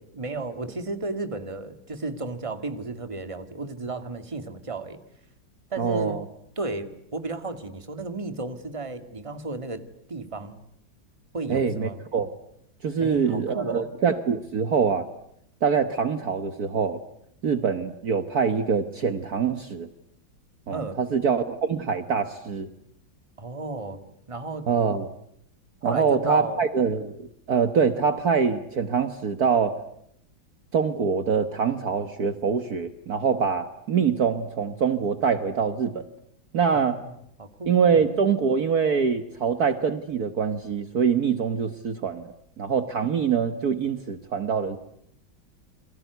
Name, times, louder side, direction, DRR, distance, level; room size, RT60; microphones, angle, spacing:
voice 1, 0.1-5.0 5.7-6.2 6.6-9.8 10.1-10.6 11.3-12.0 13.0-13.9 20.7-21.0 23.4-24.0 24.3-24.7 25.8-26.6 36.7-37.1 37.4-38.0, right 3 dB, 15° right, 9 dB, 2.1 m, -33 dB
voice 2, 5.8-6.2 11.5-12.3 12.8-15.1 15.6-17.0 17.4-19.9 20.7-22.7 24.7-25.1 25.8-29.8 30.7-36.0 36.5-37.0 37.7-44.8, right 6 dB, 55° right, 10 dB, 1.7 m, -24 dB
29.5 x 24.0 x 8.2 m, 0.73 s
omnidirectional pair, 2.1 m